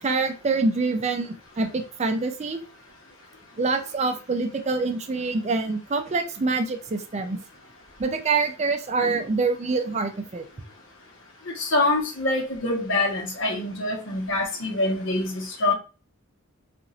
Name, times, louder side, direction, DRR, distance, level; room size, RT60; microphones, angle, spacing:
voice 1, 0.0-2.6 3.6-7.4 8.0-10.4, right 3 dB, 30° right, 7 dB, 0.4 m, -25 dB
voice 2, 11.5-15.7, left 2 dB, 60° left, 0 dB, 1.0 m, -25 dB
2.9 x 2.5 x 2.6 m, 0.34 s
head